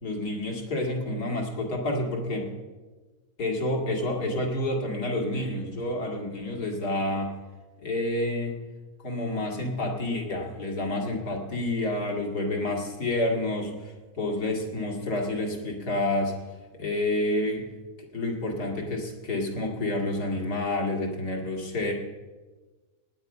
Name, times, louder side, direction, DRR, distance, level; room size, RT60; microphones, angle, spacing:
voice 1, 0.0-2.5 3.4-7.3 7.8-8.6 9.0-16.3 16.8-17.7 18.1-21.9, left 1 dB, 85° left, 1 dB, 2.7 m, -29 dB
18.5 x 9.0 x 5.5 m, 1.3 s
omnidirectional pair, 1.6 m